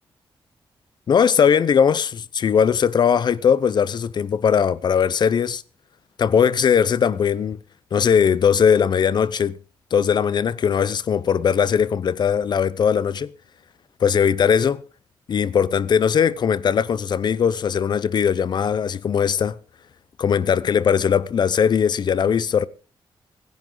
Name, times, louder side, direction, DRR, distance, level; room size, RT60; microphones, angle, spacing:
voice 1, 1.1-5.6 6.2-7.6 7.9-9.6 9.9-13.3 14.0-14.8 15.3-19.6 20.2-22.7, left 7 dB, 55° left, 0.7 m, -19 dB
25.0 x 10.5 x 3.9 m
wide cardioid pair, 130°, 9 cm